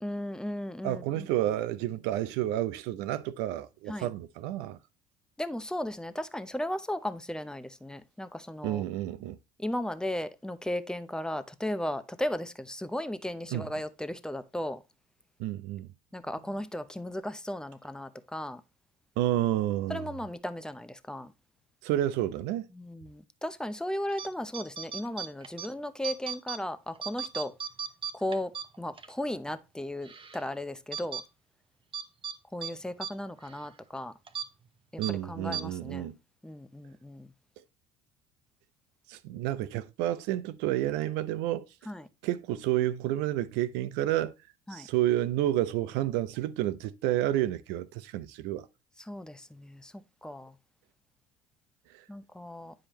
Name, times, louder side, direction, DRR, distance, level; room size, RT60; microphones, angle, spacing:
voice 1, 0.0-1.3 3.9-4.1 5.4-8.8 9.6-14.8 16.1-18.6 19.9-21.3 22.7-27.5 28.1-31.2 32.5-34.1 35.1-36.1 36.4-37.3 41.9-42.1 44.7-44.9 49.1-50.5 52.1-52.7, left 1 dB, 5° left, 0.7 m, -36 dB
voice 2, 0.8-4.8 8.6-9.4 13.5-13.7 15.4-15.9 19.2-20.1 21.8-22.7 35.0-36.2 39.1-41.7 42.2-44.3 44.7-48.7 51.9-52.0, right 13 dB, 65° right, 0.6 m, -30 dB
sound 1, 24.1-24.3 24.5-25.7 26.0-26.6 26.9-29.1 29.5-29.6 30.0-30.4 30.9-31.2 31.9-32.4 32.6-32.7 33.0-33.1 33.4-33.6 34.3-34.5 35.0-35.1 35.5-35.6, right 8 dB, 25° right, 0.9 m, -36 dB
9.8 x 4.9 x 3.0 m
hypercardioid pair, 60°, 19 cm